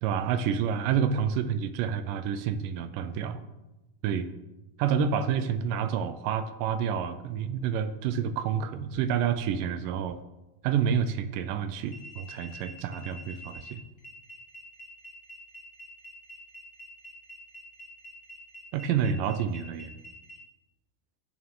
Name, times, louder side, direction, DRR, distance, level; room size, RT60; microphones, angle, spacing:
voice 1, 0.0-3.4 4.0-4.3 4.8-10.2 10.6-13.8 18.7-19.9, right 7 dB, 80° right, 11 dB, 2.0 m, -28 dB
sound 1, 11.8-20.4, right 1 dB, 75° left, 0.6 m, -47 dB
13.0 x 8.8 x 3.7 m, 1.0 s
omnidirectional pair, 4.3 m